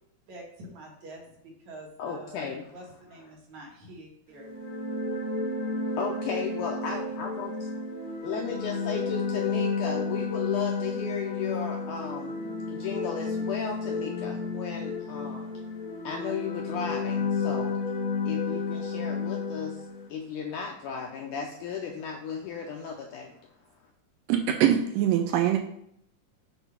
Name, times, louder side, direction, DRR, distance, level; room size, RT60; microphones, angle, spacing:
voice 1, 0.3-1.2 1.7-2.4 2.7-4.5 6.8-7.0, right 1 dB, 55° right, -1 dB, 2.4 m, -46 dB
voice 2, 2.0-2.8 3.1-3.3 5.8-7.7 8.2-12.4 12.7-15.6 16.0-17.8 18.3-23.3, left 6 dB, 80° left, 1 dB, 1.8 m, -35 dB
sound 1, 4.4-20.1, left 4 dB, 65° left, 1.3 m, -31 dB
voice 3, 24.3-25.6, right 10 dB, 80° right, 4 dB, 2.1 m, -23 dB
8.1 x 3.7 x 5.6 m, 0.72 s
omnidirectional pair, 4.3 m